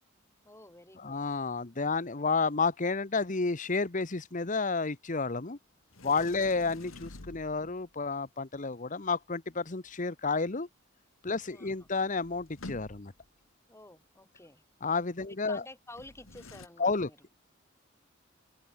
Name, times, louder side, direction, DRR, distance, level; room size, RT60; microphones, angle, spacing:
voice 1, 0.4-1.2 6.1-6.5 11.5-11.9 13.7-14.6 15.3-17.2, left 2 dB, 15° left, 4.8 m, -51 dB
voice 2, 1.0-5.6 6.0-10.7 11.2-13.1 14.8-15.6 16.8-17.1, left 4 dB, 40° left, 1.1 m, -31 dB
Sliding door, 5.9-7.9 11.4-11.5 11.7-13.3 15.9-16.7, left 2 dB, 80° left, 1.9 m, -49 dB
open air
head